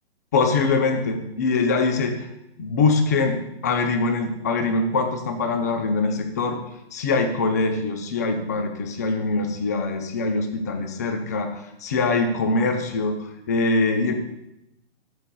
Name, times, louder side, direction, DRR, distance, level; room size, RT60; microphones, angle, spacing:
voice 1, 0.3-2.3 2.6-3.4 3.6-6.6 6.9-14.1, left 3 dB, 15° left, 6 dB, 0.4 m, -23 dB
12.0 x 8.1 x 2.2 m, 0.87 s
hypercardioid pair, 145°, 33 cm